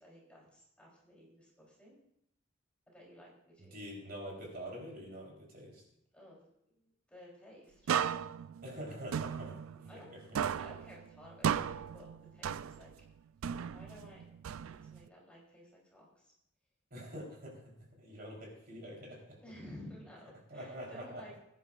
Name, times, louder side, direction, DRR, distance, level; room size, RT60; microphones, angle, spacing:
voice 1, 0.0-2.0 2.9-3.9 6.1-7.9 9.9-10.1 10.5-12.9 13.7-14.2 14.6-16.3 19.4-21.4, left 1 dB, 5° left, -4 dB, 3.4 m, -54 dB
voice 2, 3.7-5.8 8.6-10.2 16.9-17.7 18.0-19.4 20.5-21.4, equal, 45° right, -2 dB, 3.7 m, -46 dB
sound 1, 7.9-10.1 10.4-13.0 13.4-15.1, right 8 dB, 90° right, 0.4 m, -36 dB
20.5 x 10.5 x 2.5 m, 0.76 s
head